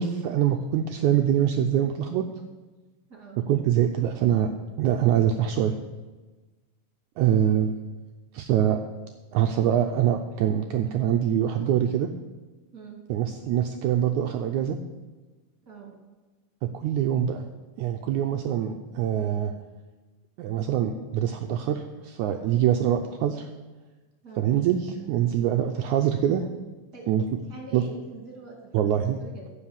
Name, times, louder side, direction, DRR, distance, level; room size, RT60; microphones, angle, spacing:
voice 1, 0.0-2.2 3.5-4.5 4.8-5.7 7.2-7.8 8.3-8.8 9.3-12.1 13.1-14.8 16.7-17.5 17.8-19.5 20.4-23.5 24.4-26.4 27.1-27.2 27.7-27.8 28.7-29.2, right 10 dB, 85° right, 5 dB, 1.7 m, -24 dB
voice 2, 3.1-3.4 12.7-13.0 15.7-15.9 24.2-24.5 26.9-27.1 27.5-28.7 29.2-29.5, right 4 dB, 30° right, -1 dB, 2.7 m, -44 dB
14.5 x 5.7 x 7.1 m, 1.2 s
omnidirectional pair, 4.1 m